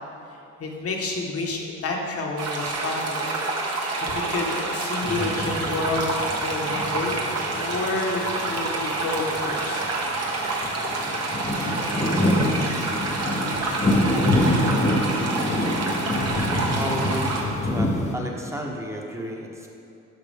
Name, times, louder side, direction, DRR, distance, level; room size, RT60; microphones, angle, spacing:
voice 1, 0.6-3.3 3.6-7.2 7.6-9.8, left 3 dB, 50° left, 0 dB, 1.3 m, -29 dB
sound 1, 2.4-17.4, right 3 dB, 55° right, 1.4 m, -28 dB
sound 2, 5.0-18.1, left 1 dB, 25° left, 0.8 m, -26 dB
voice 2, 16.8-17.3 17.6-19.7, equal, 10° right, 0 dB, 1.1 m, -32 dB
11.0 x 5.8 x 3.5 m, 2.6 s
cardioid pair, 90°, 30 cm